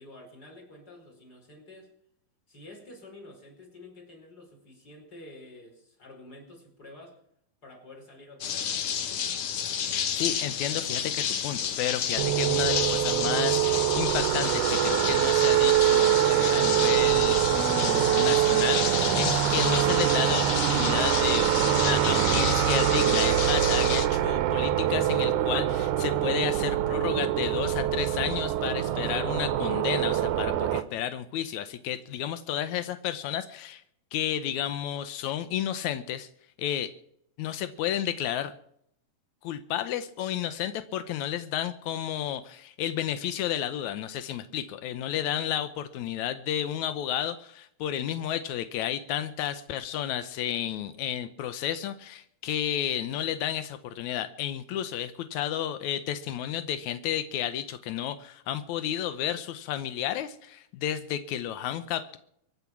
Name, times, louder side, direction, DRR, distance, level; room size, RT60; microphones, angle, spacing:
voice 1, 0.0-1.9 2.5-7.2 7.6-9.2, left 2 dB, 25° left, 2 dB, 5.0 m, -49 dB
sound 1, 8.4-24.1, left 8 dB, 70° left, 1.5 m, -31 dB
voice 2, 10.2-33.8 34.1-36.3 36.6-36.9 37.4-38.5 39.4-62.2, left 11 dB, 85° left, 11 dB, 1.6 m, -32 dB
sound 2, 12.2-30.8, right 12 dB, 75° right, 1.9 m, -24 dB
24.0 x 10.0 x 6.0 m, 0.70 s
omnidirectional pair, 4.4 m